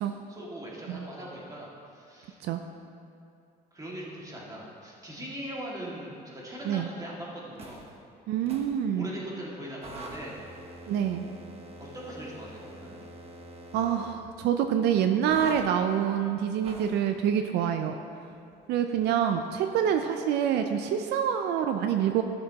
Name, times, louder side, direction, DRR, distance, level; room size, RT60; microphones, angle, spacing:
voice 1, 0.3-2.4 3.7-7.9 8.4-8.6 8.9-10.4 10.9-11.0 11.8-13.0, right 1 dB, 20° right, -5 dB, 2.0 m, -41 dB
sound 1, 7.6-7.9 8.5-8.8 9.8-14.2 15.3-15.7 16.6-17.0, right 2 dB, 35° right, 1.0 m, -45 dB
voice 2, 8.3-9.1 10.9-11.2 13.7-18.0 18.7-22.2, right 9 dB, 80° right, 6 dB, 0.5 m, -26 dB
12.5 x 6.6 x 2.9 m, 2.5 s
cardioid pair, 110°, 17 cm